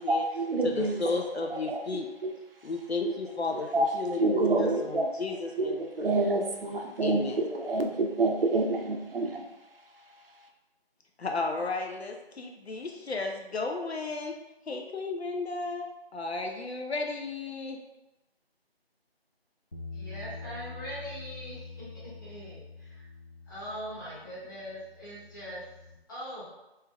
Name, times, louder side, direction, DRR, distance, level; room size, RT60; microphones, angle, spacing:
voice 1, 0.1-1.0 1.5-2.3 3.0-3.1 3.7-3.9 4.2-5.1 5.6-9.4, right 2 dB, 60° right, 3 dB, 0.7 m, -28 dB
voice 2, 0.6-2.1 2.6-6.1 7.0-7.4 11.2-14.4 14.7-17.8, left 3 dB, 80° left, 3 dB, 0.6 m, -34 dB
Bass guitar, 19.7-26.0, left 3 dB, 40° left, 0.5 m, -45 dB
voice 3, 19.9-21.9 22.2-23.0 23.5-25.6 26.1-26.5, equal, 20° left, -11 dB, 1.0 m, -41 dB
3.4 x 3.1 x 3.4 m, 0.98 s
figure-of-eight pair, 160°, 31 cm